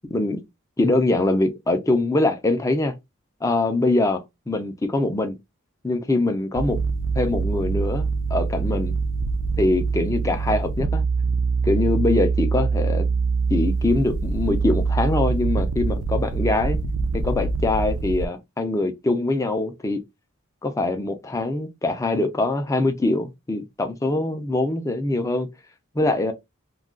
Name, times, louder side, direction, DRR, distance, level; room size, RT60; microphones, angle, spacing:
voice 1, 0.1-0.4 0.8-2.9 3.4-5.4 5.8-6.8 7.1-8.9 9.6-11.0 11.6-13.1 13.5-16.8 17.1-20.0 20.6-25.5 25.9-26.3, left 2 dB, 15° left, 0.4 m, -23 dB
sound 1, 6.6-18.3, right 4 dB, 75° right, 0.4 m, -24 dB
2.3 x 2.2 x 3.6 m
head